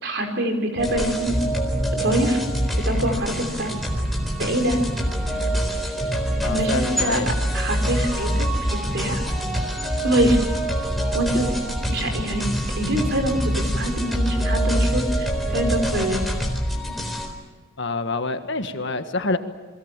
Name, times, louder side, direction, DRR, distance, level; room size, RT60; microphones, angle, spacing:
voice 1, 0.0-1.4 1.9-2.4 2.8-3.7 4.4-4.8 6.4-7.2 7.5-9.2 10.0-10.4 11.1-11.6 11.9-16.3, right 1 dB, 55° right, 4 dB, 4.9 m, -24 dB
sound 1, 0.8-17.3, equal, ahead, 4.0 m, -25 dB
voice 2, 6.4-7.3 17.8-19.4, left 3 dB, 55° left, 8 dB, 1.6 m, -27 dB
29.0 x 22.0 x 7.5 m, 1.2 s
head